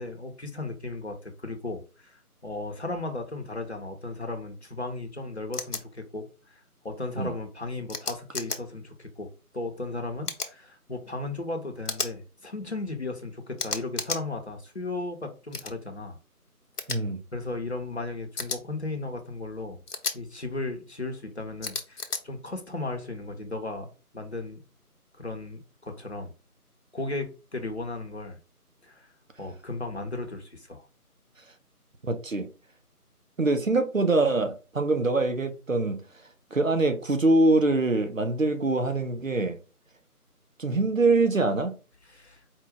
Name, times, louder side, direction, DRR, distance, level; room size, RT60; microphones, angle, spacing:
voice 1, 0.0-6.6 6.8-16.2 17.3-19.8 20.1-24.6 25.2-26.3 26.9-28.4 28.8-29.1 29.4-30.9 42.1-42.4, left 2 dB, 45° left, 0.8 m, -35 dB
sound 1, 5.5-5.8 7.9-8.6 10.2-10.5 11.9-12.1 13.6-14.2 15.5-15.7 16.8-17.0 18.4-18.6 19.9-20.2 21.6-22.2, left 4 dB, 85° left, 0.9 m, -32 dB
voice 2, 16.9-17.2 32.0-32.5 33.4-36.0 36.5-39.6 40.6-41.7, right 2 dB, 55° right, 0.8 m, -24 dB
4.6 x 2.2 x 3.6 m
figure-of-eight pair, 165°, 46 cm